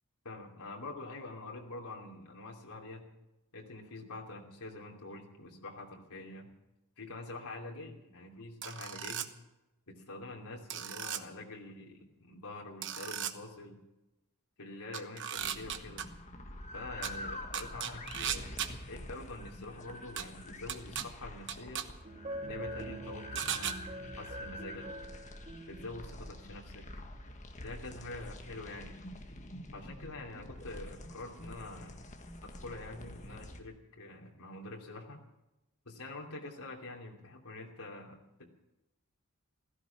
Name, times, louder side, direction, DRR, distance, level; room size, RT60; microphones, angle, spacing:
voice 1, 0.2-3.1 3.5-6.5 7.0-9.3 9.9-13.8 14.6-16.1 16.7-18.5 18.9-21.8 22.4-23.8 24.1-24.9 25.7-26.9 27.6-29.0 29.7-32.1 32.4-35.2 35.8-38.5, left 2 dB, 90° left, -1 dB, 2.8 m, -46 dB
sound 1, 8.6-9.3 10.7-11.2 12.8-13.3 14.9-16.0 17.0-17.1 17.5-18.7 20.2-20.3 20.7-21.0 21.5-21.8 23.4-23.7, right 9 dB, 55° right, 1.1 m, -36 dB
sound 2, 15.4-33.6, left 1 dB, 35° left, 1.6 m, -46 dB
sound 3, 21.6-26.5, right 1 dB, 35° right, 1.6 m, -45 dB
16.5 x 14.5 x 5.9 m, 0.96 s
head